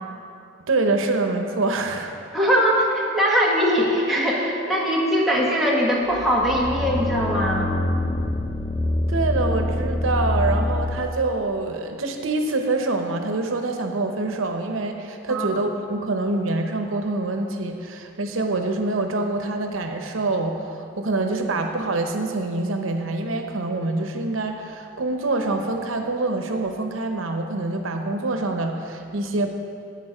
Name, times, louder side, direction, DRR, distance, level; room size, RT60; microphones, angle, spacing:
voice 1, 0.7-2.1 9.1-29.5, right 2 dB, 90° right, 5 dB, 0.9 m, -25 dB
voice 2, 2.3-7.7 15.3-15.5, equal, ahead, -5 dB, 1.3 m, -21 dB
sound 1, 6.1-11.2, left 1 dB, 15° left, 0.3 m, -25 dB
11.0 x 8.2 x 5.0 m, 2.5 s
head